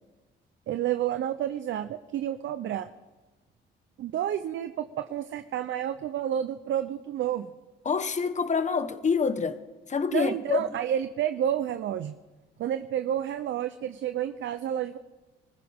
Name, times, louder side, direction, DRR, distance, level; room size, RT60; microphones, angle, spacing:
voice 1, 0.7-2.9 4.0-7.5 10.1-12.1 12.6-15.0, right 10 dB, 70° right, 10 dB, 0.7 m, -30 dB
voice 2, 7.8-9.6 9.9-10.6, left 5 dB, 35° left, 10 dB, 1.3 m, -26 dB
25.5 x 15.0 x 3.7 m, 1.2 s
cardioid pair, 90°, 20 cm